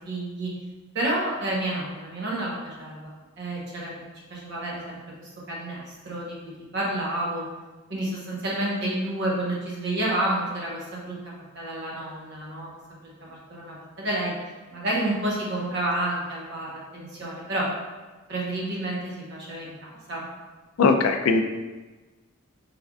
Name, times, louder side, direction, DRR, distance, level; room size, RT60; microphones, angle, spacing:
voice 1, 0.1-0.5 0.9-4.0 4.3-6.3 6.7-7.5 7.9-11.2 11.5-12.7 13.0-14.3 14.7-17.7 18.3-19.7 20.1-20.3, right 1 dB, 55° right, -4 dB, 0.9 m, -30 dB
voice 2, 20.8-21.4, left 4 dB, 75° left, 6 dB, 0.3 m, -19 dB
3.5 x 3.3 x 2.2 m, 1.2 s
head